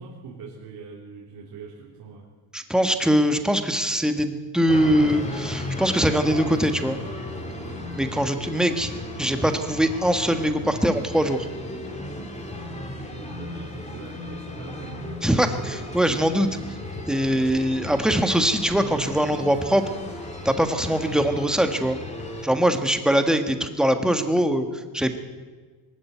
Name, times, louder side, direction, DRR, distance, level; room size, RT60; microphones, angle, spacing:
voice 1, 0.0-2.3 7.5-7.8 12.5-15.0 22.7-22.8, right 4 dB, 60° right, -4 dB, 4.0 m, -42 dB
voice 2, 2.5-7.0 7.9-8.9 9.2-11.5 15.2-16.6 17.1-19.8 20.4-22.0 22.4-25.2, equal, ahead, 7 dB, 1.4 m, -22 dB
sound 1, 4.7-22.5, left 1 dB, 15° left, 3.0 m, -35 dB
23.0 x 13.5 x 9.3 m, 1.4 s
cardioid pair, 155°, 42 cm